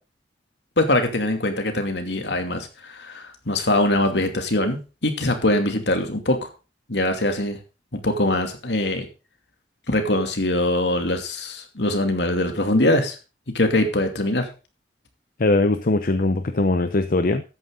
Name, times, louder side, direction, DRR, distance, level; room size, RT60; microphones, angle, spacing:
voice 1, 0.8-6.5 6.9-7.6 8.0-9.1 9.9-13.2 13.5-14.5, left 1 dB, 70° left, 5 dB, 2.6 m, -22 dB
voice 2, 15.4-17.4, left 2 dB, 50° left, 9 dB, 0.8 m, -20 dB
13.0 x 9.4 x 3.8 m, 0.32 s
head